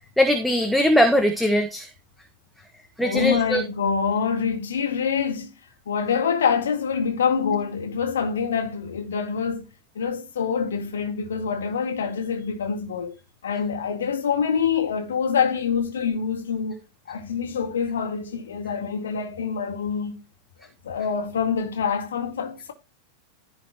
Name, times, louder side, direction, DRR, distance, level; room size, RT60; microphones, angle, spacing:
voice 1, 0.2-1.9 3.0-3.6, equal, ahead, 1.3 m, -20 dB
voice 2, 3.0-5.5 5.9-9.7 10.0-13.1 13.4-16.8 17.1-20.2 20.8-22.7, left 6 dB, 65° left, 2.0 m, -25 dB
14.5 x 5.2 x 3.0 m
figure-of-eight pair, 90°, 0 cm